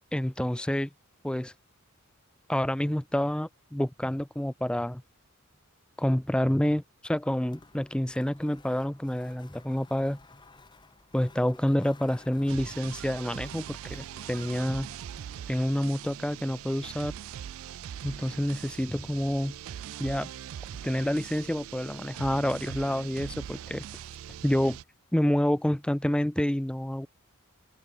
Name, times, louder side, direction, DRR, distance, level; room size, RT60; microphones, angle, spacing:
voice 1, 0.1-0.9 1.2-1.5 2.5-5.0 6.0-10.2 11.1-14.9 15.5-17.1 18.0-19.6 20.0-20.3 20.8-23.8 24.4-24.8 25.1-27.1, equal, 5° left, 0.4 m, -28 dB
sound 1, 7.2-16.5, left 3 dB, 20° left, 1.1 m, -56 dB
sound 2, 12.5-24.8, right 10 dB, 65° right, 0.3 m, -41 dB
open air
head